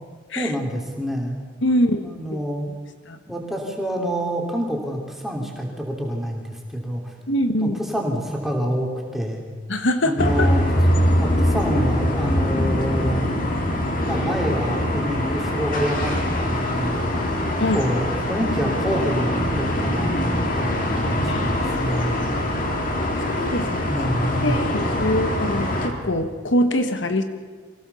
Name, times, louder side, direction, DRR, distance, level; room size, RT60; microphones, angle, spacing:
voice 1, 0.3-1.4 2.0-2.7 3.3-7.1 7.6-9.4 10.0-10.7 11.2-13.3 14.0-17.1 17.7-22.3 23.8-24.6, equal, ahead, 0 dB, 3.2 m, -27 dB
voice 2, 1.6-2.4 3.1-3.2 7.3-7.8 9.7-10.5 17.6-17.8 21.3-21.4 23.3-23.8 24.4-27.2, left 1 dB, 70° left, 8 dB, 1.4 m, -23 dB
sound 1, 10.2-25.9, left 1 dB, 45° left, 2.9 m, -23 dB
24.0 x 16.5 x 7.0 m, 1.4 s
head